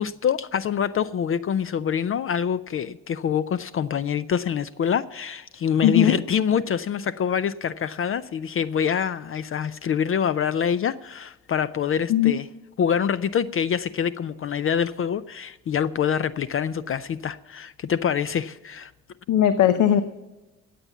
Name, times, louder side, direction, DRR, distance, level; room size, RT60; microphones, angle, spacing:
voice 1, 0.0-12.5 12.8-18.9, left 8 dB, 45° left, 15 dB, 0.5 m, -25 dB
voice 2, 5.8-6.1 12.1-12.3 19.3-20.0, left 10 dB, 80° left, 11 dB, 0.8 m, -18 dB
14.5 x 8.5 x 7.2 m, 1.1 s
cardioid pair, 90°, 30 cm